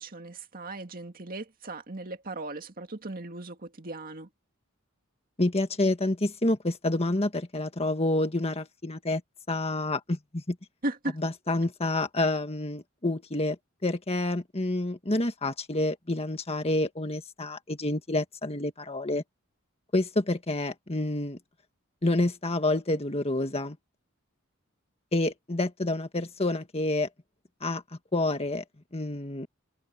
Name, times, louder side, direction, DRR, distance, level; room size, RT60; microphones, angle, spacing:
voice 1, 0.0-4.3 10.8-11.2, right 2 dB, 45° right, 2.1 m, -37 dB
voice 2, 5.4-9.2 9.5-10.6 11.2-13.6 13.8-19.2 19.9-21.4 22.0-23.8 25.1-27.1 27.6-27.8 28.1-28.6 28.9-29.5, left 2 dB, 30° left, 1.7 m, -28 dB
head